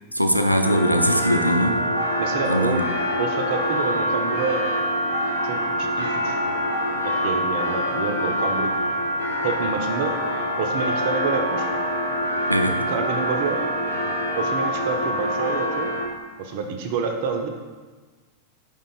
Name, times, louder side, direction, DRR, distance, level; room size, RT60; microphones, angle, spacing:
voice 1, 0.1-1.8 2.4-2.8 12.5-12.9, equal, 90° right, 5 dB, 0.5 m, -21 dB
sound 1, 0.6-16.1, equal, 75° left, 0.9 m, -25 dB
voice 2, 2.2-2.8 3.2-4.6 5.4-6.4 7.0-8.7 9.4-10.2 10.6-11.7 12.9-13.6 14.3-15.9 16.4-17.5, right 5 dB, 50° right, 3 dB, 0.6 m, -28 dB
5.2 x 3.7 x 5.6 m, 1.3 s
figure-of-eight pair, 90°, 0 cm